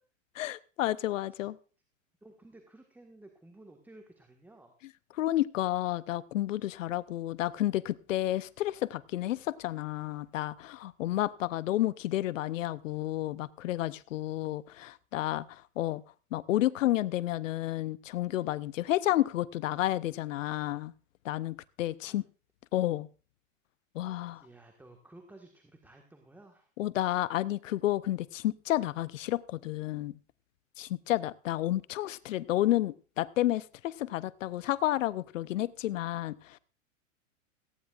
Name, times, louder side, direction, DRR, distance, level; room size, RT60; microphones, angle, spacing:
voice 1, 0.3-1.6 5.2-16.0 16.3-20.9 21.2-22.2 22.7-23.1 23.9-24.4 26.8-30.2 30.8-36.6, left 14 dB, 70° left, 18 dB, 0.8 m, -31 dB
voice 2, 2.2-4.8 22.0-22.2 24.3-26.7, right 2 dB, 5° right, 3 dB, 1.6 m, -54 dB
18.0 x 15.0 x 2.5 m, 0.37 s
hypercardioid pair, 115°, 39 cm